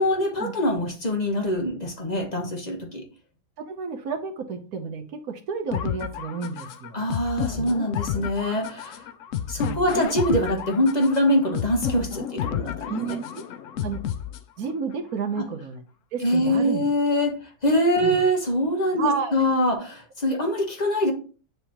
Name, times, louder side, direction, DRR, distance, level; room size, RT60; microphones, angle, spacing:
voice 1, 0.0-3.0 6.9-9.0 9.5-12.9 16.2-17.3 17.6-21.1, equal, 30° left, 1 dB, 1.0 m, -24 dB
voice 2, 3.6-7.0 7.6-7.7 9.6-9.9 12.9-13.4 13.8-14.0 14.6-15.8 16.1-16.8 18.0-18.2 19.0-19.3, right 5 dB, 60° right, 6 dB, 1.2 m, -31 dB
sound 1, 5.7-14.7, left 9 dB, 85° left, 0.7 m, -31 dB
9.6 x 3.4 x 2.9 m, 0.38 s
omnidirectional pair, 1.9 m